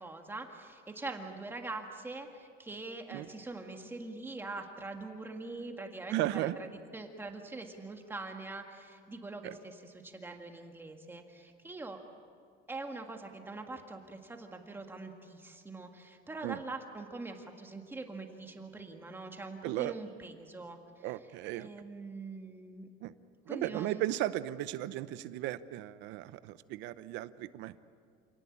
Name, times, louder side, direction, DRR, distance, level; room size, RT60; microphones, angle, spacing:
voice 1, 0.0-12.0 12.7-21.1 21.5-22.9 23.5-24.1, right 3 dB, 10° right, 3 dB, 1.8 m, -43 dB
voice 2, 6.1-6.6 9.4-9.5 16.4-16.6 19.6-19.9 21.0-21.7 23.0-23.1 23.5-27.7, right 15 dB, 65° right, 14 dB, 0.8 m, -35 dB
27.5 x 18.5 x 8.6 m, 2.3 s
cardioid pair, 150°, 20 cm